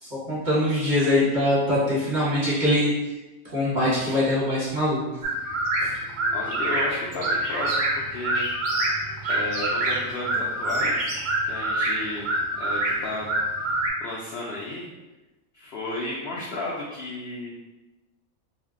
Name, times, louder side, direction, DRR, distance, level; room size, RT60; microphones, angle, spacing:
voice 1, 0.0-2.9 3.5-5.0 5.8-5.9, left 1 dB, 35° right, -9 dB, 1.0 m, -23 dB
sound 1, 5.2-13.9, right 1 dB, 80° right, 0.4 m, -26 dB
voice 2, 6.3-8.4 9.3-11.1 11.4-12.3 12.6-13.3 13.6-14.9 15.5-17.5, left 2 dB, 70° left, -4 dB, 0.6 m, -33 dB
2.5 x 2.1 x 3.5 m, 1.1 s
omnidirectional pair, 1.5 m